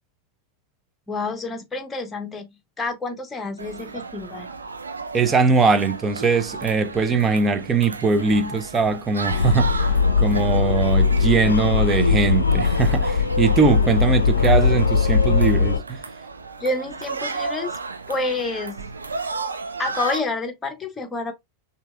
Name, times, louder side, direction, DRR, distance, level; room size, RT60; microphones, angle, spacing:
voice 1, 1.1-4.5 16.6-17.7 18.1-18.9 19.8-21.3, left 3 dB, 15° left, 1.0 m, -28 dB
sound 1, 3.6-20.2, right 4 dB, 75° right, 0.5 m, -34 dB
voice 2, 5.1-9.9 10.2-16.0, right 4 dB, 20° right, 0.7 m, -21 dB
sound 2, 9.3-15.8, left 5 dB, 75° left, 0.5 m, -20 dB
5.9 x 2.9 x 2.3 m
figure-of-eight pair, 90°, 0 cm